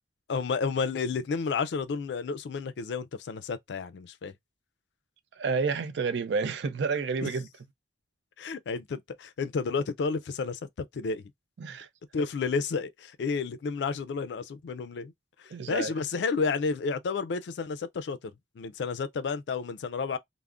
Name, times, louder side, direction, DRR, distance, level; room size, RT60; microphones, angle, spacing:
voice 1, 0.3-4.3 7.2-7.3 8.4-11.2 12.1-15.1 15.4-20.2, left 5 dB, 75° left, 0.4 m, -31 dB
voice 2, 5.4-7.5 11.6-11.9 15.5-15.9, right 5 dB, 80° right, 0.4 m, -30 dB
2.4 x 2.0 x 3.5 m
head